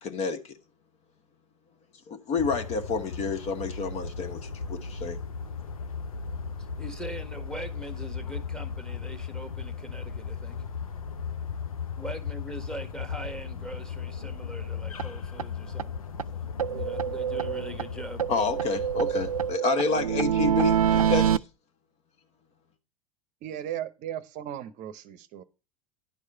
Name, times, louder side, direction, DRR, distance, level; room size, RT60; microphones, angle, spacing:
voice 1, 0.0-0.5 2.1-5.2 18.3-21.4, left 4 dB, 40° left, 1.1 m, -29 dB
sound 1, 2.4-19.6, left 5 dB, 80° left, 0.7 m, -36 dB
voice 2, 6.8-10.6 12.0-15.9 16.7-18.2, right 1 dB, 5° left, 1.5 m, -41 dB
sound 2, 15.0-15.1 15.4-15.5 15.8-15.9 16.2-16.3 16.6-17.9 18.2-21.4, right 9 dB, 85° right, 0.4 m, -26 dB
voice 3, 23.4-25.4, right 11 dB, 45° right, 0.8 m, -36 dB
10.5 x 4.8 x 5.6 m
figure-of-eight pair, 85°, 18 cm